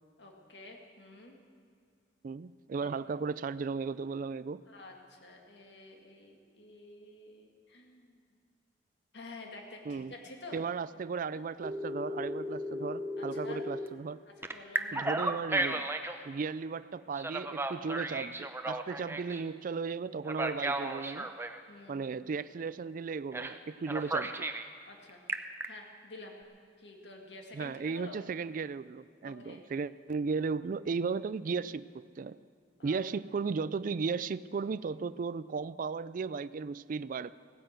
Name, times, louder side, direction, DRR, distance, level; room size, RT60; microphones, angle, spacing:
voice 1, 0.2-1.4 2.8-2.9 4.7-8.2 9.1-10.6 11.3-11.4 13.2-13.6 14.4-15.3 21.7-22.0 24.0-24.2 24.9-26.4 26.8-28.2 29.2-29.6 32.8-33.0, left 2 dB, 75° left, 2 dB, 2.0 m, -50 dB
voice 2, 2.2-4.6 9.9-10.1 10.5-14.2 14.9-15.9 16.2-21.3 21.9-24.4 27.5-32.4 32.8-37.3, right 5 dB, 50° right, 16 dB, 0.4 m, -35 dB
Telephone, 11.6-13.9 14.4-16.2 17.2-19.4 20.2-21.6 23.3-23.6 23.9-24.7 25.1-25.7, right 1 dB, 15° right, 0.7 m, -34 dB
17.0 x 10.0 x 7.9 m, 2.3 s
head